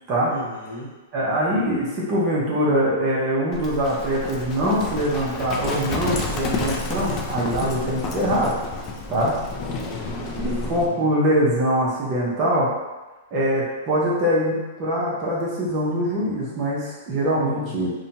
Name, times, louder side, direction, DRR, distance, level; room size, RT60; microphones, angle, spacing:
voice 1, 0.2-0.9 9.6-10.7 17.3-17.8, equal, 80° left, -4 dB, 0.8 m, -37 dB
voice 2, 1.1-8.5 9.1-9.4 10.4-12.7 13.3-17.9, equal, 35° right, -6 dB, 0.7 m, -23 dB
Livestock farm animals working animals, 3.5-10.9, left 3 dB, 35° left, 0.3 m, -30 dB
2.7 x 2.2 x 2.8 m, 1.2 s
hypercardioid pair, 140°, 0 cm